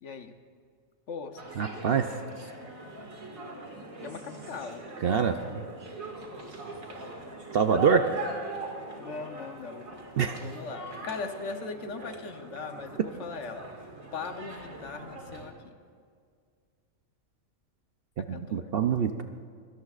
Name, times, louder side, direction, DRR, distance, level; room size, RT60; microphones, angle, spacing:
voice 1, 0.0-0.3 1.1-1.4 4.0-4.8 8.7-9.9 10.4-13.7 14.1-15.8 18.2-18.7, left 4 dB, 60° left, 7 dB, 1.2 m, -39 dB
sound 1, 1.4-15.5, right 2 dB, 80° right, 2.5 m, -41 dB
voice 2, 1.6-2.2 5.0-5.4 7.5-8.1 10.2-10.4 18.2-19.2, right 6 dB, 55° right, 7 dB, 0.7 m, -25 dB
23.5 x 17.0 x 2.4 m, 2.1 s
omnidirectional pair, 1.4 m